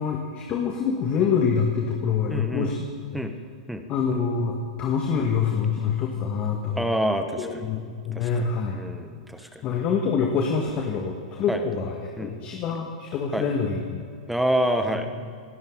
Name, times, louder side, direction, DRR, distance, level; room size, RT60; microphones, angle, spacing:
voice 1, 0.0-2.8 3.1-3.2 3.9-6.9 7.4-8.8 9.4-14.1, left 6 dB, 35° left, 1 dB, 2.0 m, -26 dB
voice 2, 2.3-2.7 3.1-3.3 3.7-3.8 6.8-7.7 8.1-8.5 8.7-9.6 11.5-11.6 12.2-12.3 13.3-13.4 14.3-15.1, right 1 dB, ahead, 6 dB, 1.4 m, -27 dB
27.5 x 12.0 x 4.0 m, 2.2 s
hypercardioid pair, 115°, 4 cm